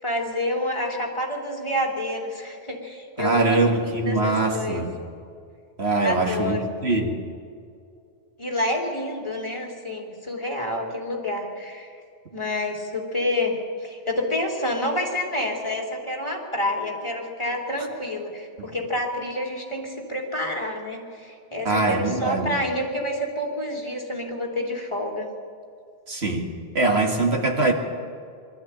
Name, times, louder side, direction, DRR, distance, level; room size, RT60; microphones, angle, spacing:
voice 1, 0.0-3.6 4.0-4.8 6.0-6.6 8.4-11.9 12.3-25.3, left 1 dB, 25° left, -1 dB, 3.1 m, -28 dB
voice 2, 3.2-4.9 5.8-7.2 18.6-18.7 21.6-22.6 26.1-26.5 26.7-27.7, right 2 dB, 70° right, 2 dB, 2.3 m, -23 dB
22.0 x 13.5 x 8.8 m, 2.3 s
omnidirectional pair, 1.1 m